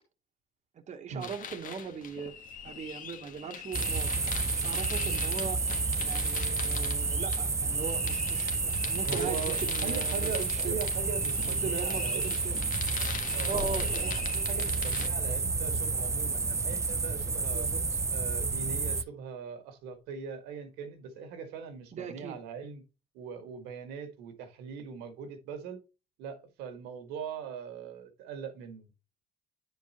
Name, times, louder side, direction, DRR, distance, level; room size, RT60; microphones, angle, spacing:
voice 1, 0.9-2.3 2.6-4.1 4.5-5.6 6.0-10.8 11.5-12.6 13.4-14.1 17.5-18.0 21.9-22.4, right 6 dB, 45° right, 1.2 m, -39 dB
sound 1, 1.2-15.1, left 7 dB, 55° left, 1.5 m, -42 dB
sound 2, 3.7-19.0, right 4 dB, 20° right, 0.5 m, -30 dB
voice 2, 8.7-12.4 13.3-17.7 18.1-22.8 23.1-25.8 26.2-28.9, right 6 dB, 85° right, 1.7 m, -40 dB
sound 3, 13.5-19.4, left 3 dB, 35° left, 1.6 m, -47 dB
10.0 x 4.7 x 2.9 m
supercardioid pair, 90°, 16 cm